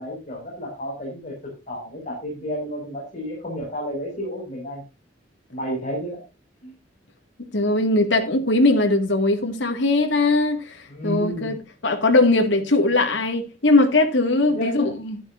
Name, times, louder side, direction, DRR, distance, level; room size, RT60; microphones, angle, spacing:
voice 1, 0.0-4.8 5.5-6.2 6.6-6.7 10.9-11.5 14.4-14.9, equal, 40° left, 6.0 m, -31 dB
voice 2, 7.5-10.8 11.0-11.6 11.8-15.2, left 2 dB, 90° left, 2.2 m, -20 dB
12.5 x 12.0 x 2.7 m
head